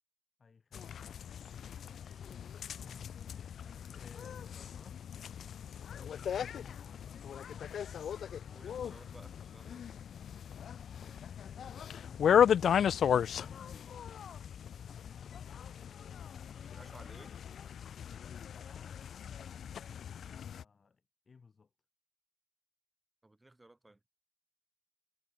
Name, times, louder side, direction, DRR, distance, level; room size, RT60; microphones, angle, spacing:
voice 1, 0.4-1.2 2.0-5.0 6.2-7.1 10.9-15.7 16.1-16.7 18.4-21.7, left 5 dB, 35° left, 7.9 m, -59 dB
sound 1, 0.7-20.6, left 8 dB, 60° left, 0.6 m, -35 dB
voice 2, 1.9-2.2 7.0-7.7 8.5-10.0 16.6-17.3 23.2-24.0, right 2 dB, 15° right, 5.2 m, -58 dB
cardioid pair, 90°, 0 cm